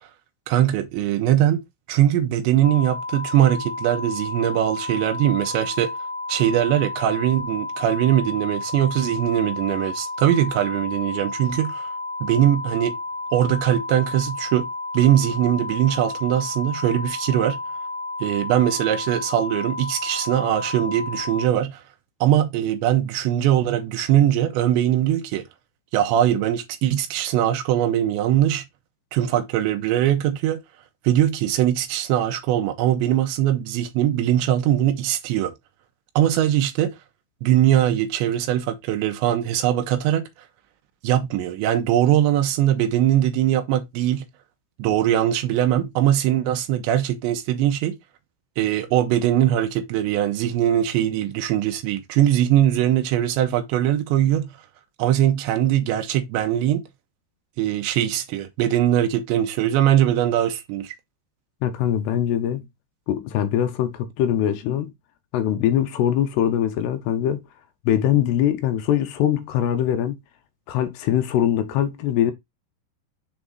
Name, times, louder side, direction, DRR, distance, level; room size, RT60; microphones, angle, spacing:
voice 1, 0.5-1.6 1.9-5.9 6.3-11.9 12.2-12.9 13.3-14.7 14.9-17.6 18.2-21.8 22.2-25.4 25.9-28.6 29.1-30.6 31.0-35.5 36.2-37.0 37.4-40.2 41.0-44.3 44.8-48.0 48.6-54.5 55.0-56.8 57.6-60.9, right 11 dB, 85° right, 2.9 m, -21 dB
sound 1, 2.6-21.5, left 2 dB, 30° left, 1.7 m, -32 dB
voice 2, 61.6-62.7 63.1-64.9 65.3-67.4 67.9-70.1 70.7-72.3, left 10 dB, 80° left, 2.6 m, -22 dB
7.3 x 3.5 x 3.8 m
omnidirectional pair, 5.2 m